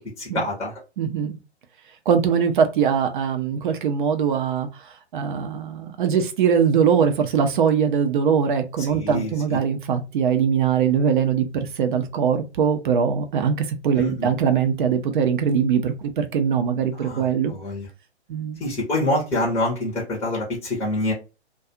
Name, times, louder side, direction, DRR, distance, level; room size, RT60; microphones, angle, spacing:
voice 1, 0.2-0.8 8.8-9.6 14.0-14.3 17.0-17.9 18.6-21.1, left 1 dB, 5° left, 0.7 m, -26 dB
voice 2, 1.0-1.4 2.1-4.7 5.1-17.5 18.3-18.6, right 7 dB, 50° right, 0.6 m, -21 dB
2.4 x 2.3 x 2.6 m
hypercardioid pair, 130°, 34 cm